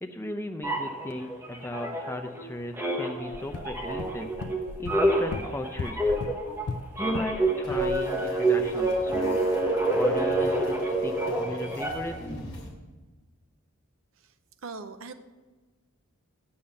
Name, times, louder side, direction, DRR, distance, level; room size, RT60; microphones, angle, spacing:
voice 1, 0.0-4.3 4.8-6.0 7.0-9.4 9.9-10.8 11.0-12.2, left 1 dB, 10° left, 6 dB, 0.6 m, -36 dB
sound 1, 0.6-2.4 2.7-12.2, right 2 dB, 10° right, 1.1 m, -27 dB
sound 2, 3.3-7.4 7.7-8.0, left 3 dB, 90° left, 0.6 m, -37 dB
sound 3, 7.6-12.7, left 1 dB, 30° left, 2.6 m, -44 dB
voice 2, 14.6-15.1, right 4 dB, 70° right, 10 dB, 0.7 m, -39 dB
8.6 x 7.1 x 6.5 m, 1.3 s
head